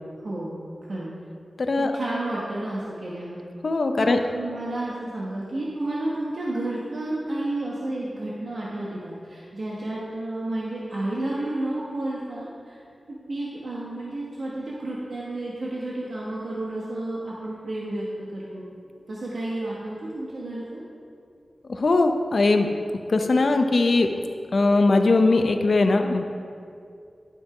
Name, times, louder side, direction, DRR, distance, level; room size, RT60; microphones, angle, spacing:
voice 1, 0.2-1.1 1.7-3.4 4.0-12.8 13.1-18.6 19.1-20.8, right 1 dB, 70° right, -6 dB, 1.2 m, -31 dB
voice 2, 1.6-1.9 3.6-4.2 21.7-22.7 23.1-24.1 24.5-26.2, left 3 dB, 60° left, 5 dB, 0.6 m, -20 dB
11.5 x 5.4 x 4.9 m, 2.4 s
wide cardioid pair, 110°, 0 cm